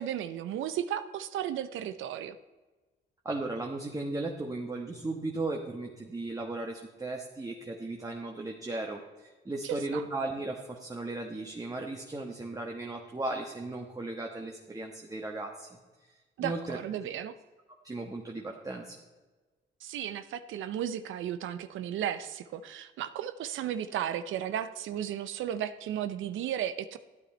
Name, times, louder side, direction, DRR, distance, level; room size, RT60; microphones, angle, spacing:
voice 1, 0.0-2.4 9.6-10.0 16.4-17.3 19.8-27.0, right 10 dB, 80° right, 12 dB, 0.6 m, -34 dB
voice 2, 3.2-15.8 16.4-16.8 17.8-19.0, right 2 dB, 15° right, 0 dB, 1.2 m, -36 dB
12.0 x 9.2 x 4.3 m, 1.3 s
cardioid pair, 90°, 20 cm